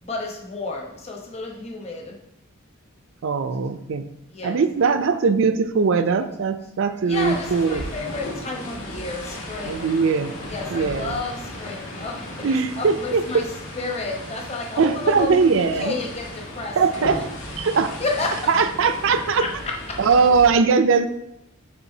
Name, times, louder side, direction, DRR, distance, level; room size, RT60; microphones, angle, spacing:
voice 1, 0.0-2.2 4.3-4.6 7.1-9.8 10.5-13.4 13.7-16.8 17.1-17.2 18.0-18.4 19.4-20.0, left 3 dB, 30° left, 0 dB, 0.9 m, -31 dB
voice 2, 3.2-4.1 4.4-7.9 9.7-10.3 10.7-11.2 12.4-13.4 14.8-15.9 16.8-17.3 17.6-17.9 18.5-19.4 20.0-21.1, right 5 dB, 65° right, 10 dB, 0.4 m, -20 dB
sound 1, 7.1-20.5, left 1 dB, 80° left, 1.5 m, -35 dB
6.9 x 5.1 x 2.7 m, 0.84 s
head